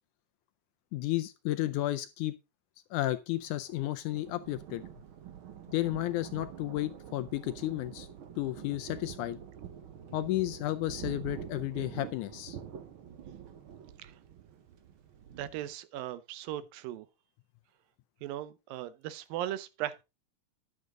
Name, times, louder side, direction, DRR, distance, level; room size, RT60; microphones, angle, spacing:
voice 1, 0.9-2.3 2.9-4.8 5.7-8.1 8.4-9.4 10.1-12.6, left 15 dB, 80° left, 1.9 m, -32 dB
Thunder, 3.4-15.7, right 9 dB, 65° right, 1.3 m, -46 dB
voice 2, 15.4-17.1 18.2-20.0, right 13 dB, 90° right, 2.6 m, -38 dB
10.5 x 8.2 x 3.8 m
omnidirectional pair, 3.9 m